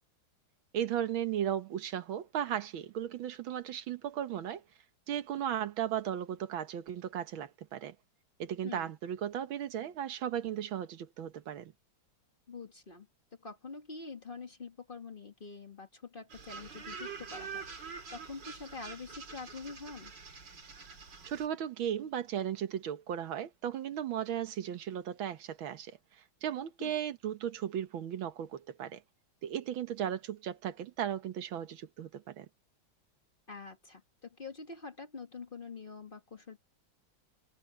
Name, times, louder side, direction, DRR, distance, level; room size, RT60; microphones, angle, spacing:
voice 1, 0.7-4.6 5.1-8.0 8.4-11.7 21.3-26.0 26.4-29.0 29.4-32.5, right 10 dB, 85° right, 1.9 m, -36 dB
voice 2, 12.5-20.1 26.8-27.0 33.5-36.6, left 4 dB, 30° left, 1.8 m, -46 dB
sound 1, 16.3-21.5, right 5 dB, 65° right, 3.0 m, -45 dB
omnidirectional pair, 2.1 m